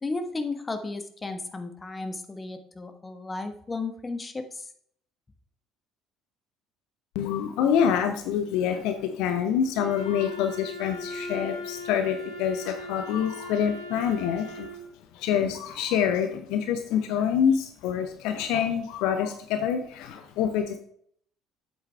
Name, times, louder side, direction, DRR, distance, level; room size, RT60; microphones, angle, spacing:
voice 1, 0.0-4.6, left 3 dB, 20° left, 8 dB, 1.2 m, -34 dB
voice 2, 7.1-14.7 15.1-20.8, left 8 dB, 60° left, 7 dB, 0.7 m, -26 dB
Wind instrument woodwind instrument, 9.7-14.9, left 1 dB, 65° right, 1.7 m, -39 dB
9.1 x 8.0 x 3.3 m, 0.64 s
figure-of-eight pair, 55°, 0 cm